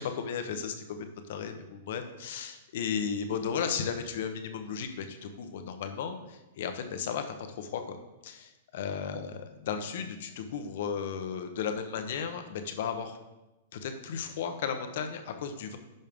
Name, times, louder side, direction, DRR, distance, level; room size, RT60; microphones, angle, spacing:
voice 1, 0.0-8.0 8.2-13.2 13.7-15.8, left 7 dB, 60° left, 7 dB, 1.0 m, -35 dB
11.0 x 5.5 x 3.6 m, 1.0 s
hypercardioid pair, 160°, 0 cm